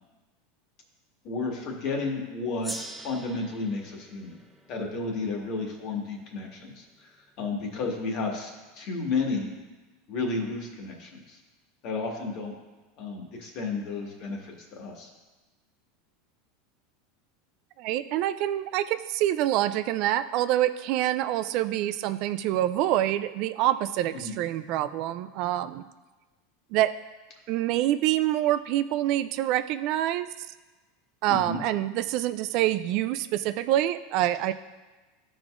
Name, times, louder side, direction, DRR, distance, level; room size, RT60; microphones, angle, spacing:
voice 1, 1.2-4.4 4.7-9.5 10.1-11.4 11.8-12.5 13.0-15.1 24.1-24.3 31.3-31.6, left 3 dB, 50° left, 0 dB, 1.6 m, -32 dB
Gong, 2.6-7.4, right 1 dB, 5° right, 0.5 m, -44 dB
voice 2, 17.8-25.8 26.7-26.9 27.5-30.3 31.2-34.5, right 13 dB, 55° right, 12 dB, 0.3 m, -26 dB
13.5 x 4.9 x 2.5 m, 1.2 s
supercardioid pair, 135°, 0 cm